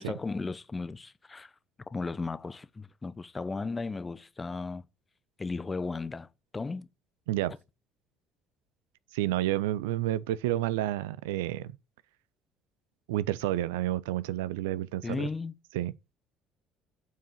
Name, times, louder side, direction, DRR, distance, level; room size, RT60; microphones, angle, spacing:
voice 1, 0.0-1.5 1.9-4.9 5.4-6.3 6.5-6.9 15.0-15.5, left 3 dB, 25° left, 0.7 m, -35 dB
voice 2, 9.1-11.7 13.1-15.3 15.7-15.9, right 14 dB, 80° right, 0.4 m, -30 dB
8.2 x 4.7 x 4.9 m
hypercardioid pair, 60°, 0 cm